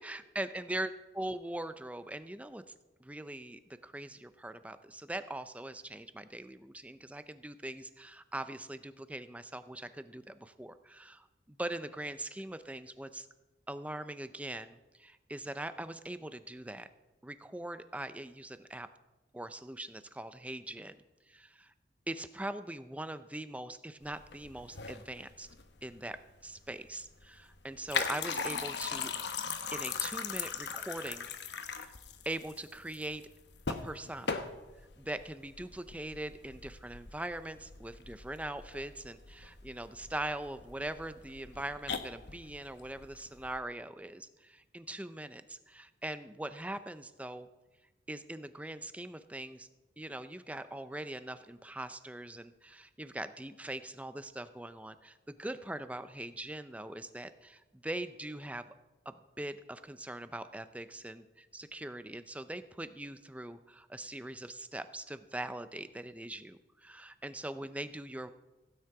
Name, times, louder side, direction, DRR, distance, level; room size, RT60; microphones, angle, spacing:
voice 1, 0.0-2.6 3.0-13.3 13.7-16.9 17.2-18.9 19.3-21.0 21.3-21.7 22.1-25.5 25.8-29.1 29.7-31.3 31.7-31.9 32.2-33.2 33.8-34.4 35.0-47.5 48.1-49.7 50.0-58.7 59.1-68.3, right 1 dB, 5° right, 11 dB, 0.5 m, -42 dB
sound 1, 24.0-43.6, left 5 dB, 60° left, 1.0 m, -40 dB
16.0 x 9.4 x 4.8 m, 1.1 s
head